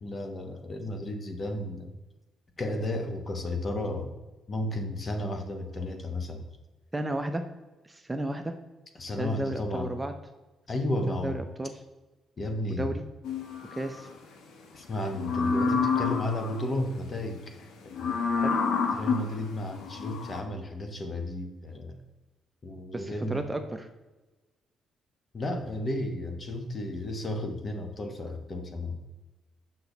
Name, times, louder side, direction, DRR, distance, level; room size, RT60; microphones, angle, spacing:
voice 1, 0.0-1.9 2.6-4.1 4.5-6.4 9.0-10.0 10.7-11.4 12.4-13.0 14.7-17.6 17.8-18.3 18.9-22.0 22.6-23.5 25.3-29.0, left 1 dB, 35° left, 5 dB, 1.2 m, -33 dB
voice 2, 6.9-7.5 7.8-8.5 9.2-10.1 11.1-11.7 12.7-13.0 13.7-14.1 18.4-18.6 22.9-23.9, right 1 dB, 15° right, 6 dB, 0.6 m, -33 dB
sound 1, 13.2-14.0 15.1-16.7 17.9-20.4, left 5 dB, 80° left, 1.1 m, -29 dB
7.0 x 5.8 x 4.0 m, 1.2 s
cardioid pair, 90°, 0 cm